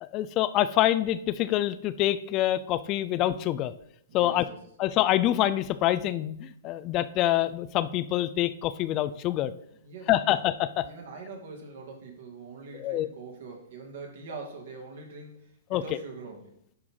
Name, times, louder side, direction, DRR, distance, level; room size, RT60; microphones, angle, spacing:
voice 1, 0.0-3.7 4.1-4.5 4.8-9.5 10.1-10.8 12.8-13.1 15.7-15.8, left 13 dB, 35° left, 14 dB, 0.4 m, -26 dB
voice 2, 4.1-4.6 9.8-10.4 10.8-16.5, right 4 dB, 65° right, 1 dB, 2.5 m, -43 dB
11.0 x 4.6 x 3.8 m, 0.70 s
hypercardioid pair, 135°, 0 cm